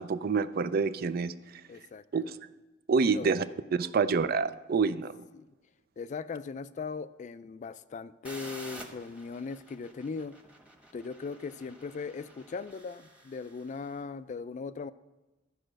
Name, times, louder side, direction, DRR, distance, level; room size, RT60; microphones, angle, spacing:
voice 1, 0.0-1.3 2.1-2.4 2.9-3.4 3.7-5.1, right 5 dB, 55° right, 14 dB, 0.4 m, -27 dB
voice 2, 1.7-2.0 3.0-3.6 5.3-5.5 6.0-10.3 10.9-14.9, left 4 dB, 40° left, 14 dB, 0.3 m, -39 dB
sound 1, 8.2-13.9, right 1 dB, 5° right, 1.1 m, -50 dB
12.5 x 4.9 x 6.3 m, 1.1 s
head